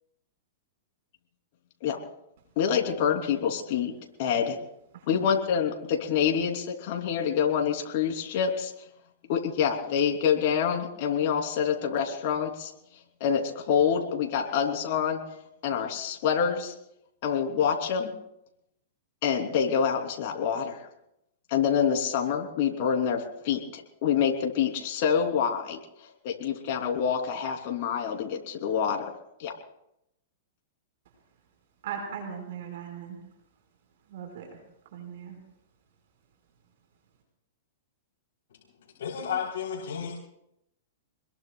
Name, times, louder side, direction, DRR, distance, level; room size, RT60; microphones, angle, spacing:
voice 1, 2.5-3.9 4.2-4.6 5.1-8.7 9.3-12.7 13.2-15.2 15.6-16.7 17.2-18.1 19.2-20.8 21.5-25.8 26.2-29.1 29.4-29.5, left 7 dB, 55° left, 2 dB, 3.3 m, -26 dB
voice 2, 31.8-33.2 34.1-34.5 34.9-35.4, right 7 dB, 65° right, 2 dB, 5.3 m, -38 dB
voice 3, 39.0-40.1, left 7 dB, 75° left, -2 dB, 3.7 m, -32 dB
27.0 x 21.5 x 2.4 m, 0.80 s
hypercardioid pair, 135°, 0 cm